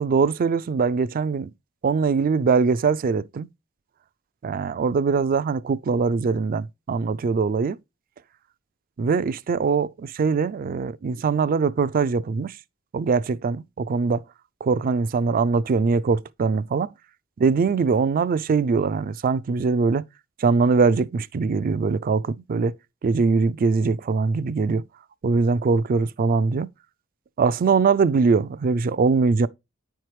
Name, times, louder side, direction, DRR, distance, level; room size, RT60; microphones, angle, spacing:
voice 1, 0.0-1.5 1.8-3.5 4.4-7.8 9.0-12.5 12.9-14.2 14.6-16.9 17.4-20.0 20.4-22.7 23.0-24.8 25.2-26.7 27.4-29.5, right 4 dB, 45° right, 0.3 m, -22 dB
9.8 x 4.5 x 3.3 m
head